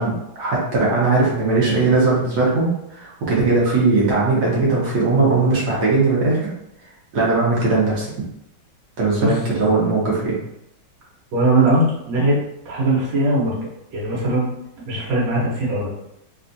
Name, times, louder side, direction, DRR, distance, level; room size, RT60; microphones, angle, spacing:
voice 1, 0.0-6.5 7.1-8.1 9.0-10.4, right 3 dB, 65° right, -5 dB, 1.3 m, -19 dB
voice 2, 11.3-12.4 12.6-13.6 13.9-14.5 14.8-15.9, right 2 dB, 80° right, -6 dB, 1.6 m, -19 dB
3.5 x 2.3 x 2.6 m, 0.81 s
omnidirectional pair, 2.1 m